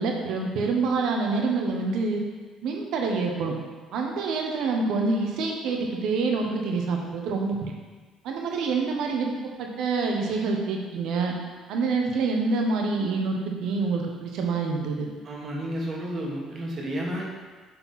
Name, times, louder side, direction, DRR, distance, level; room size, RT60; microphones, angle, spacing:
voice 1, 0.0-2.2 2.6-3.6 3.9-7.7 8.2-9.3 9.6-11.3 11.7-15.1, right 4 dB, 70° right, 1 dB, 1.2 m, -26 dB
voice 2, 15.2-17.3, equal, 35° right, -2 dB, 1.6 m, -31 dB
7.6 x 4.5 x 4.3 m, 1.4 s
cardioid pair, 125°, 0 cm